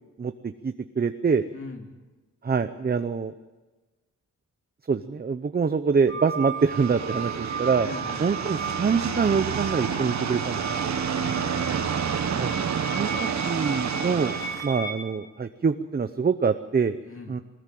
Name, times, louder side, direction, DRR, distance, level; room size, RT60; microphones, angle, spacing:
voice 1, 0.2-1.4 2.4-3.3 4.9-7.9 8.2-10.9 12.3-12.5 12.9-14.4 14.6-17.0 17.3-17.4, right 5 dB, 30° right, 9 dB, 0.8 m, -25 dB
voice 2, 1.5-1.9 7.8-8.3 11.0-11.9 17.0-17.4, left 3 dB, 45° left, 3 dB, 2.6 m, -41 dB
sound 1, 6.1-14.9, right 4 dB, 10° left, 4.9 m, -35 dB
sound 2, 6.6-14.6, right 7 dB, 65° right, 1.3 m, -29 dB
22.0 x 20.0 x 7.7 m, 1.2 s
wide cardioid pair, 135°, 30 cm